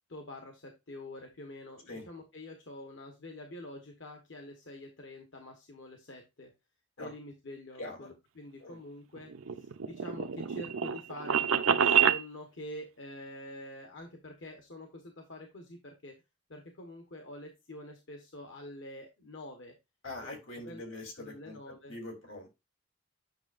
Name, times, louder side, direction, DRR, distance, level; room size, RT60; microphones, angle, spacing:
voice 1, 0.1-6.5 7.0-9.3 9.6-16.2 16.5-19.7 20.2-20.3 20.6-22.0, left 1 dB, 60° left, 3 dB, 1.1 m, -46 dB
voice 2, 7.8-8.1 8.6-8.8 20.0-21.6 21.9-22.5, left 2 dB, 85° left, 2 dB, 3.1 m, -43 dB
sound 1, 9.2-12.2, right 8 dB, 85° right, 0.6 m, -27 dB
9.1 x 6.1 x 2.5 m, 0.24 s
head